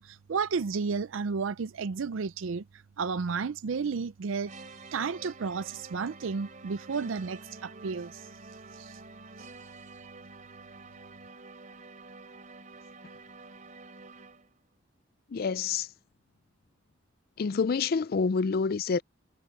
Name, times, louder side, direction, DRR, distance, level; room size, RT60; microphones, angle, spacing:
voice 1, 0.0-2.6 3.0-4.5 4.9-8.2 8.7-9.0, right 5 dB, 80° right, 0.5 m, -32 dB
sound 1, 4.4-14.6, right 3 dB, 40° right, 3.3 m, -49 dB
voice 2, 15.3-15.9 17.4-19.0, left 5 dB, 50° left, 0.4 m, -27 dB
head